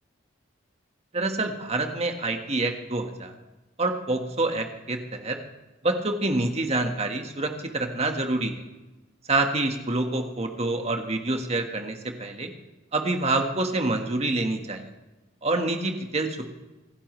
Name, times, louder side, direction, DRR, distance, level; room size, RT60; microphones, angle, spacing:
voice 1, 1.1-3.3 3.8-5.4 5.8-8.5 9.3-12.5 12.9-14.8 15.4-16.5, right 2 dB, 30° right, 4 dB, 1.6 m, -27 dB
27.0 x 11.5 x 3.3 m, 1.1 s
head